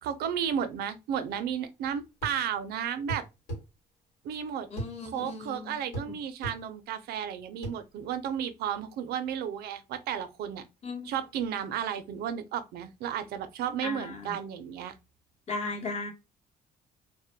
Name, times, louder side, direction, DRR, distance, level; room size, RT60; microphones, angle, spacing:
voice 1, 0.0-3.2 4.2-4.7 5.0-10.6 11.0-15.0, right 8 dB, 70° right, 0.4 m, -33 dB
sound 1, 2.2-2.4 3.1-3.6 4.8-4.9 5.9-6.1 6.4-6.6 7.6-7.8, right 1 dB, 80° left, 1.3 m, -35 dB
voice 2, 4.7-6.0 10.8-11.1 13.8-14.1 15.5-16.1, left 3 dB, 40° left, 0.9 m, -36 dB
2.1 x 2.1 x 3.0 m
cardioid pair, 110°, 17 cm